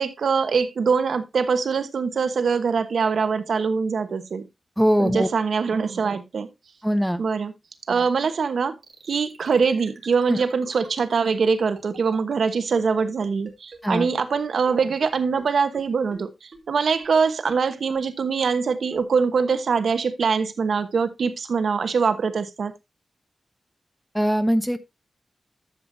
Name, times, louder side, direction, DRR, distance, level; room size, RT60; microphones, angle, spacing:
voice 1, 0.0-4.5 5.0-6.5 7.2-7.5 7.9-8.8 9.1-22.7, right 5 dB, 80° right, 1.1 m, -23 dB
voice 2, 4.8-5.3 6.8-7.2 10.3-10.4 13.8-14.1 24.1-24.8, equal, ahead, 0.8 m, -21 dB
sound 1, 8.8-14.1 14.3-14.4 14.7-14.8 15.0-15.1 15.4-15.5 15.7-15.8 16.1-16.2 16.5-16.6 17.0-17.1 17.5-17.6 17.9-18.0 18.4-18.5 18.9-19.0, right 4 dB, 55° right, 2.6 m, -45 dB
12.0 x 7.5 x 2.8 m
wide cardioid pair, 175°, 0 cm